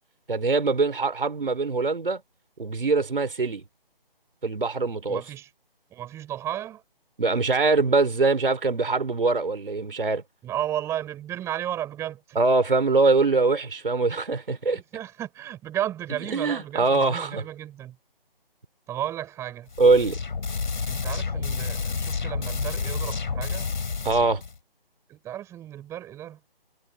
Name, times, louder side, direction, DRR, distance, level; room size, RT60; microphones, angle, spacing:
voice 1, 0.3-2.2 2.6-3.6 4.4-5.2 7.2-10.2 12.4-14.8 16.3-17.4 19.8-20.2 24.0-24.4, right 3 dB, 65° right, 4.1 m, -23 dB
voice 2, 5.1-5.5 5.9-6.8 10.4-12.4 14.7-18.0 18.9-19.7 20.9-23.7 25.1-26.4, right 12 dB, 10° right, 6.5 m, -33 dB
sound 1, 19.7-24.6, left 5 dB, 55° left, 5.9 m, -30 dB
figure-of-eight pair, 155°, 29 cm